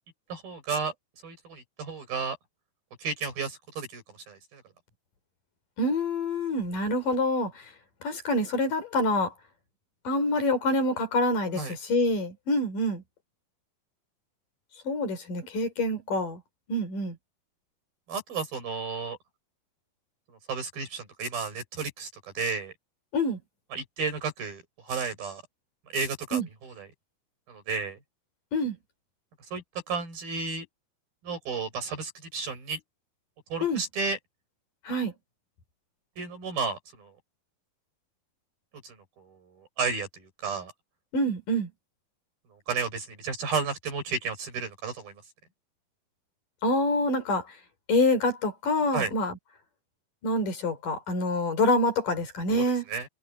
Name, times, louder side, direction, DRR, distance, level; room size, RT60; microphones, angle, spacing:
voice 1, 0.3-0.9 1.2-2.4 3.0-4.0 4.3-4.6 11.6-11.7 18.1-19.2 20.5-22.1 22.3-22.7 23.7-25.4 25.9-26.9 27.5-28.0 29.5-30.7 31.2-32.8 33.5-34.2 36.2-37.1 38.8-39.0 39.3-40.7 42.7-45.1 48.9-49.1 52.9-53.1, right 5 dB, 70° right, 8.4 m, -32 dB
voice 2, 5.8-7.6 8.0-9.3 10.0-13.0 14.8-16.4 16.7-17.2 23.1-23.4 26.3-26.5 28.5-28.7 33.6-33.8 34.9-35.1 41.1-41.7 46.6-47.4 47.9-49.4 50.2-52.9, left 1 dB, 60° left, 6.3 m, -26 dB
omnidirectional pair, 4.3 m